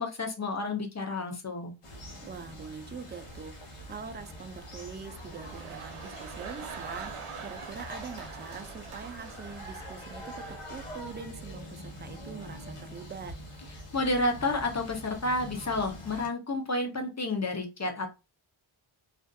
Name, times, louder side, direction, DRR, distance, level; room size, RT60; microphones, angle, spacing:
voice 1, 0.0-1.7 13.9-18.1, left 2 dB, 35° left, 0.6 m, -30 dB
sound 1, 1.8-16.3, equal, 90° left, 1.0 m, -44 dB
voice 2, 2.2-13.3, right 6 dB, 25° right, 0.3 m, -43 dB
sound 2, 3.1-11.0, right 5 dB, 80° right, 0.7 m, -45 dB
2.5 x 2.5 x 2.2 m
wide cardioid pair, 75°, 50 cm